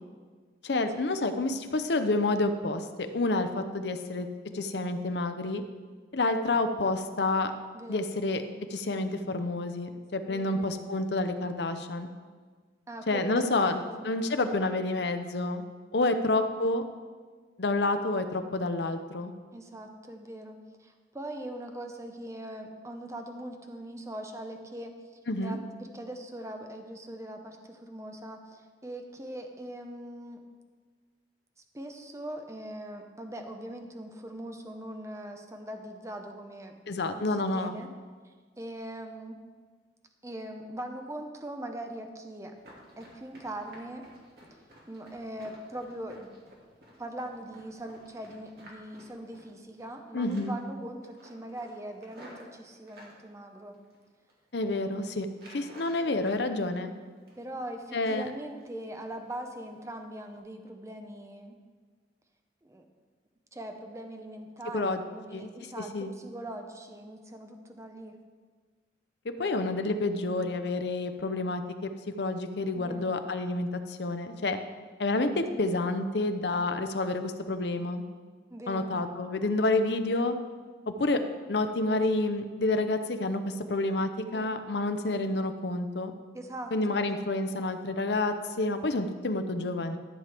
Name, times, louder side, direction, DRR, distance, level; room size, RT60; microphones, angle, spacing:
voice 1, 0.6-4.3 4.5-5.6 6.1-7.5 7.9-8.4 8.7-12.1 13.1-15.6 15.9-16.8 17.6-19.3 25.3-25.6 36.9-37.7 50.1-50.6 54.5-55.3 55.5-56.9 57.9-58.3 64.7-65.0 65.3-65.5 65.9-66.1 69.2-71.9 72.2-74.6 75.0-78.0 78.7-80.3 80.9-81.2 81.5-86.1 86.7-90.0, left 2 dB, 65° left, 8 dB, 0.7 m, -29 dB
voice 2, 7.7-8.1 10.3-10.7 12.9-14.0 16.2-16.5 19.5-25.0 25.4-25.6 25.9-30.4 31.7-36.8 37.1-37.9 38.2-39.4 40.2-42.5 43.0-44.1 44.9-46.3 47.0-53.8 57.4-61.6 62.6-62.8 63.5-68.2 72.7-73.2 75.5-75.7 78.5-79.0 84.3-84.5 86.3-87.0, right 1 dB, 15° right, 4 dB, 0.7 m, -41 dB
Run, 42.6-50.0 50.3-50.7 51.0-53.2 53.7-54.3 54.6-54.9 55.3-56.4 56.8-57.6 57.9-58.1 58.5-58.8 59.2-59.3 59.8-59.9 60.3-60.4, equal, 60° right, 2.3 m, -53 dB
13.5 x 7.5 x 3.5 m, 1.5 s
head